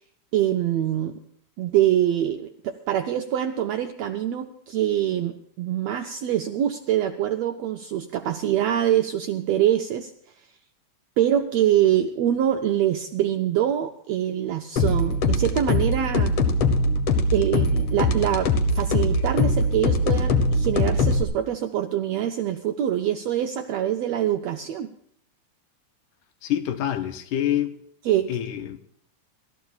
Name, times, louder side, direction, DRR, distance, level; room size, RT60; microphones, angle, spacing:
voice 1, 0.3-1.2 1.6-10.1 11.2-16.3 17.3-24.9 28.0-28.3, right 11 dB, 80° right, 1.5 m, -24 dB
sound 1, 14.8-21.2, left 2 dB, 60° left, 1.8 m, -22 dB
voice 2, 26.4-27.8 28.3-28.8, left 11 dB, 80° left, 2.3 m, -26 dB
29.0 x 13.0 x 2.4 m
omnidirectional pair, 3.6 m